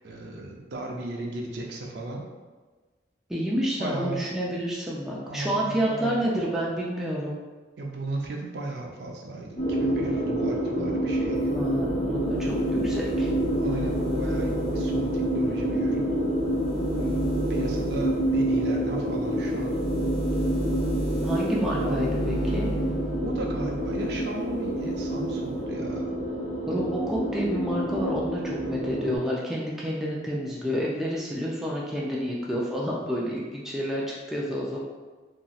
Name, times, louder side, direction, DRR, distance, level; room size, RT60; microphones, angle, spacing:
voice 1, 0.0-2.2 3.8-4.3 5.2-6.4 7.8-11.5 13.6-16.1 16.9-19.8 21.8-22.0 23.2-26.2, right 2 dB, 65° right, 0 dB, 0.5 m, -36 dB
voice 2, 3.3-7.4 11.5-13.3 21.2-22.7 26.7-34.8, equal, ahead, -5 dB, 0.3 m, -29 dB
sound 1, 9.6-29.2, right 1 dB, 45° left, 0.6 m, -28 dB
sound 2, 11.3-24.3 24.6-25.6, right 1 dB, 80° left, 1.1 m, -34 dB
2.9 x 2.7 x 2.3 m, 1.3 s
head